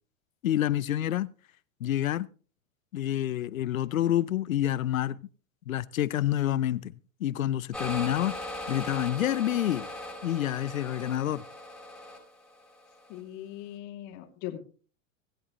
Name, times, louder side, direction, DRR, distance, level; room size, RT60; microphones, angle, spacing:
voice 1, 0.4-1.3 1.8-2.3 2.9-5.2 5.7-6.9 7.2-9.9 10.2-11.4, left 12 dB, 90° left, 0.7 m, -28 dB
sound 1, 7.7-13.2, left 1 dB, ahead, 3.9 m, -39 dB
voice 2, 13.1-14.6, left 13 dB, 50° left, 2.7 m, -40 dB
24.0 x 8.6 x 3.1 m
hypercardioid pair, 105°, 39 cm